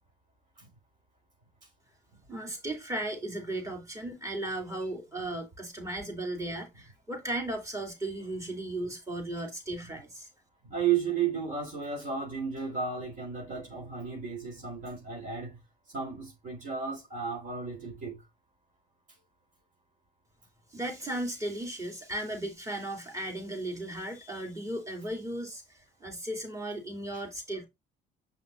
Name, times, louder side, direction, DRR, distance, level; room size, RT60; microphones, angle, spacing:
voice 1, 2.3-10.3 20.7-27.7, right 1 dB, 20° right, 2.8 m, -36 dB
voice 2, 10.6-15.6 15.9-18.2, right 7 dB, 50° right, 3.8 m, -33 dB
7.4 x 5.8 x 2.6 m
cardioid pair, 110°, 17 cm